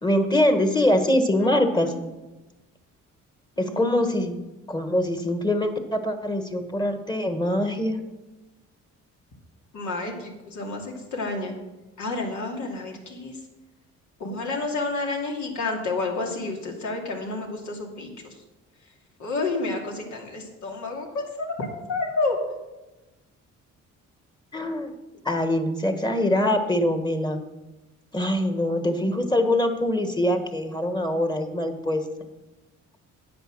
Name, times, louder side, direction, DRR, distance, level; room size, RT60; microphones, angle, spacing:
voice 1, 0.0-1.9 3.6-4.3 4.7-8.0 24.5-24.9 25.2-27.4 28.1-32.0, left 1 dB, 15° left, 7 dB, 1.6 m, -23 dB
voice 2, 1.4-1.9 3.6-3.9 9.7-11.6 12.0-13.4 14.2-18.1 19.2-22.4, left 3 dB, 70° left, 1 dB, 2.7 m, -30 dB
10.5 x 8.3 x 6.3 m, 1.1 s
cardioid pair, 90°, 30 cm